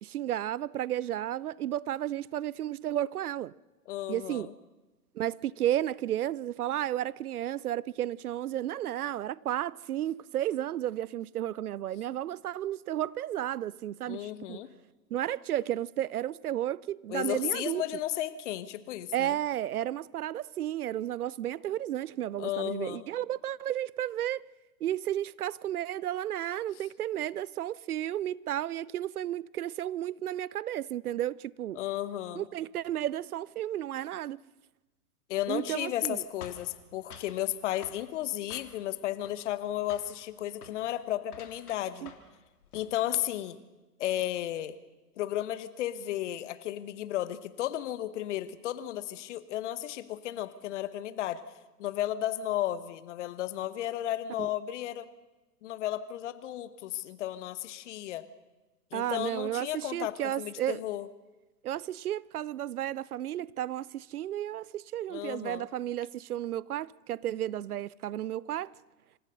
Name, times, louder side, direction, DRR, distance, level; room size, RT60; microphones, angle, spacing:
voice 1, 0.0-3.5 4.1-4.5 5.2-14.6 15.1-17.8 19.1-24.4 24.8-31.8 32.4-34.4 35.5-36.2 42.0-42.1 54.4-54.5 58.9-60.8 61.6-68.7, right 12 dB, 65° right, 0.6 m, -33 dB
voice 2, 3.9-4.5 14.1-14.7 17.1-19.4 22.4-23.1 31.7-32.4 35.3-42.1 42.7-43.6 44.0-44.8 45.2-51.4 51.8-55.1 55.6-58.2 58.9-61.1 65.1-65.7, left 13 dB, 45° left, 1.2 m, -34 dB
sound 1, 36.4-37.4 37.8-38.0 38.5-39.0 39.2-39.6 39.9-40.1 40.5-40.8 41.3-42.4 42.6-42.9, left 7 dB, 65° left, 3.2 m, -49 dB
26.5 x 15.0 x 6.6 m
figure-of-eight pair, 115°, 48 cm